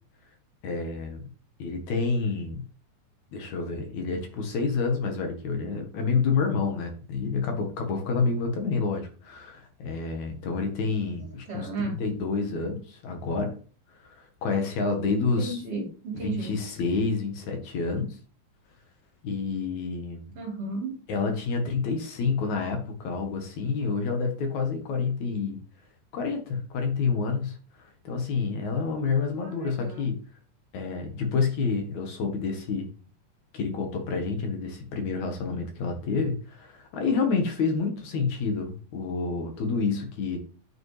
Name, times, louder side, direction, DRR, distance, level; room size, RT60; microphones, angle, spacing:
voice 1, 0.6-1.2 1.6-2.6 3.3-13.6 14.0-15.6 16.1-18.2 19.2-20.3 21.1-25.6 26.1-30.2 30.7-32.9 33.5-40.4, left 4 dB, 70° left, 4 dB, 2.7 m, -28 dB
voice 2, 11.5-11.9 15.4-16.5 20.4-20.9, right 3 dB, 50° right, 0 dB, 2.9 m, -32 dB
9.4 x 5.3 x 3.3 m, 0.39 s
omnidirectional pair, 3.5 m